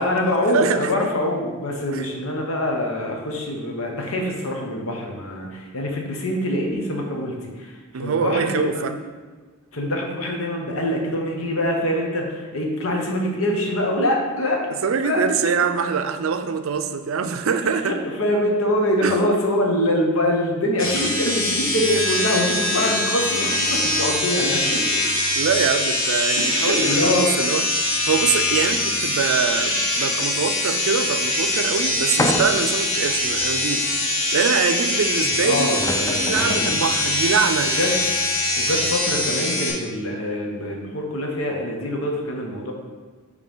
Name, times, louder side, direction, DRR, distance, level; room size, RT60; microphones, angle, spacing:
voice 1, 0.0-8.9 9.7-14.6 15.0-15.2 17.8-24.8 26.4-27.3 35.4-37.0 37.6-37.9 38.6-42.7, left 1 dB, 85° left, 1 dB, 1.1 m, -24 dB
voice 2, 0.5-0.9 1.9-2.1 7.9-8.9 14.8-17.9 19.0-19.2 25.4-27.6 28.0-35.8 36.1-37.7, right 6 dB, 75° right, 9 dB, 0.4 m, -24 dB
sound 1, 20.8-39.7, left 1 dB, 65° left, 1.5 m, -23 dB
sound 2, 32.2-32.8 33.4-33.5 35.3-35.4 35.7-36.9, left 1 dB, 15° left, 0.3 m, -26 dB
5.4 x 3.3 x 5.5 m, 1.4 s
head